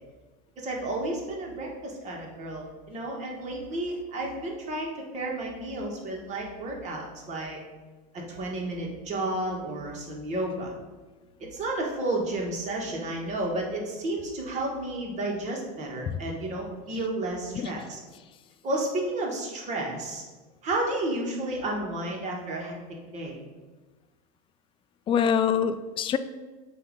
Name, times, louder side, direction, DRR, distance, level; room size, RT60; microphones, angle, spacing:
voice 1, 0.6-7.6 8.3-10.7 11.4-18.0 18.6-20.2 20.6-22.7 23.1-23.4, right 2 dB, 35° right, -1 dB, 1.6 m, -32 dB
voice 2, 25.1-26.2, left 8 dB, 25° left, 11 dB, 0.3 m, -25 dB
7.7 x 2.8 x 5.2 m, 1.3 s
supercardioid pair, 125°, 21 cm